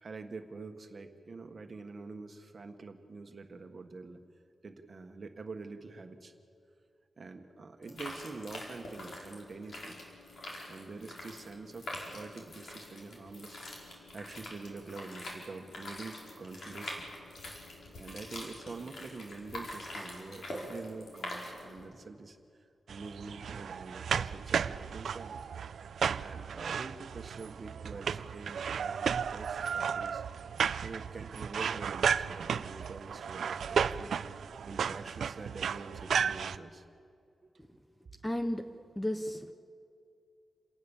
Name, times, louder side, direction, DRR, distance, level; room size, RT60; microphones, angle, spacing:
voice 1, 0.0-4.2 4.6-6.3 7.2-10.0 10.7-17.1 18.0-25.4 26.2-30.2 30.8-36.8 37.4-37.8, right 3 dB, 40° right, 6 dB, 1.5 m, -46 dB
sound 1, 7.8-21.8, left 1 dB, 60° left, 4.6 m, -45 dB
sound 2, 22.9-36.6, right 7 dB, 85° right, 0.5 m, -34 dB
voice 2, 38.2-39.5, left 1 dB, 5° left, 8 dB, 0.7 m, -34 dB
28.0 x 18.5 x 7.2 m, 2.4 s
wide cardioid pair, 175°, 0 cm